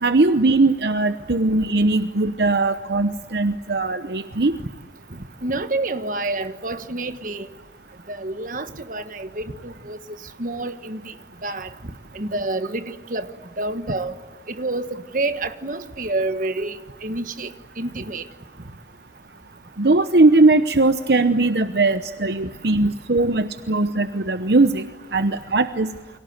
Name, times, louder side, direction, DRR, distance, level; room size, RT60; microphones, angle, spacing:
voice 1, 0.0-4.6 19.8-24.8 25.1-25.9, right 2 dB, 65° right, 0.9 m, -19 dB
voice 2, 5.1-7.5 8.1-10.0 10.4-11.1 11.4-13.3 13.6-14.1 14.5-18.3, right 2 dB, 45° right, 1.5 m, -28 dB
29.5 x 24.0 x 8.1 m
head